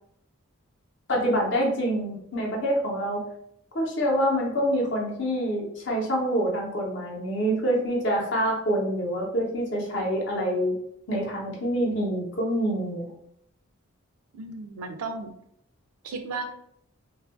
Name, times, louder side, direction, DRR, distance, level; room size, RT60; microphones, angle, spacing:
voice 1, 1.1-3.2 3.7-10.7 11.1-13.1, equal, 55° left, -1 dB, 0.7 m, -26 dB
voice 2, 14.3-15.3 16.0-16.5, right 3 dB, 85° right, 6 dB, 0.4 m, -34 dB
2.6 x 2.3 x 2.4 m, 0.73 s
head